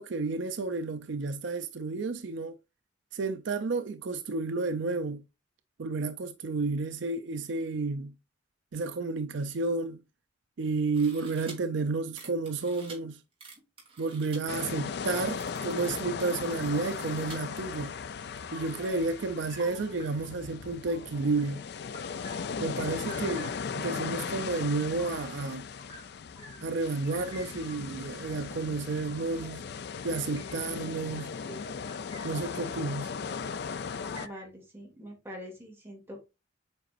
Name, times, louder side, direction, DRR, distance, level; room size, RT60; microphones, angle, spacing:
voice 1, 0.0-2.6 3.1-5.2 5.8-8.1 8.7-10.0 10.6-13.2 14.0-17.9 18.5-21.6 22.6-25.7 26.6-29.6 30.0-31.3 32.2-33.1, right 3 dB, 70° right, 0.5 m, -31 dB
sound 1, 10.9-11.5 12.1-13.0 13.4-14.4 15.0-15.1 15.3-17.4 17.9-18.0, right 4 dB, 30° right, 2.6 m, -49 dB
sound 2, 14.5-34.3, left 6 dB, 60° left, 0.4 m, -38 dB
sound 3, 18.5-20.4 20.9-21.5 21.9-25.3 25.8-34.4, equal, 25° left, 2.5 m, -50 dB
voice 2, 34.2-36.3, equal, 15° right, 2.5 m, -44 dB
7.9 x 5.0 x 2.5 m
head